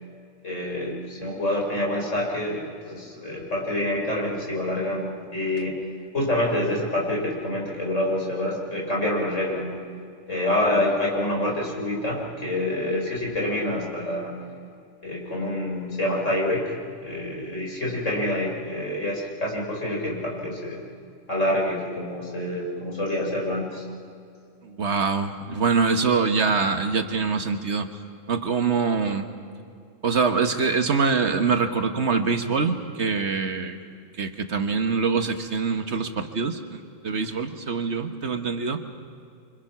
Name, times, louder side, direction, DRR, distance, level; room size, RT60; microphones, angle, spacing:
voice 1, 0.4-5.8 6.1-9.7 10.3-14.4 15.0-16.7 17.0-20.8 21.3-23.8, left 1 dB, 70° left, -2 dB, 5.4 m, -27 dB
voice 2, 24.6-27.9 28.3-29.3 30.0-33.8 34.2-38.8, right 5 dB, 60° right, 7 dB, 1.6 m, -24 dB
29.0 x 25.0 x 6.0 m, 2.4 s
omnidirectional pair, 1.3 m